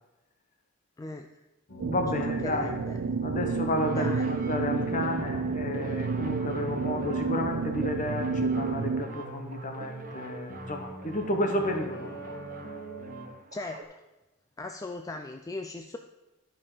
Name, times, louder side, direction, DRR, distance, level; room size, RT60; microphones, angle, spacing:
voice 1, 1.0-1.3 2.2-3.0 3.9-4.3 13.5-14.0 14.6-16.0, left 2 dB, 15° left, 5 dB, 0.3 m, -38 dB
sound 1, 1.7-13.3, right 1 dB, 80° left, 1.9 m, -42 dB
voice 2, 1.8-2.8 3.2-4.1 4.5-12.1, left 1 dB, 40° left, 4 dB, 1.1 m, -31 dB
sound 2, 1.8-9.0, right 4 dB, 85° right, 0.4 m, -30 dB
sound 3, 3.7-13.8, right 3 dB, 45° right, 0.7 m, -44 dB
11.0 x 5.3 x 4.9 m, 1.0 s
head